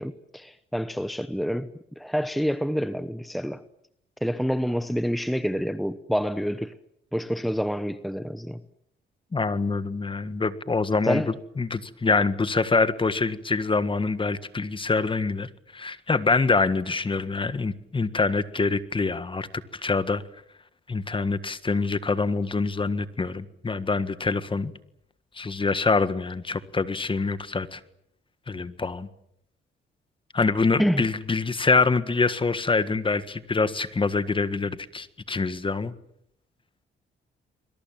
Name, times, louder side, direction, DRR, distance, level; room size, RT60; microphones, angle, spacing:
voice 1, 0.0-3.6 4.2-6.7 7.1-8.6 11.0-11.3 30.8-31.1, equal, ahead, 1.0 m, -27 dB
voice 2, 9.3-11.2 11.6-19.5 19.7-20.2 20.9-24.7 25.3-27.8 28.5-29.1 30.3-35.9, left 4 dB, 25° left, 1.7 m, -25 dB
28.5 x 22.0 x 7.6 m
cardioid pair, 90°, 20 cm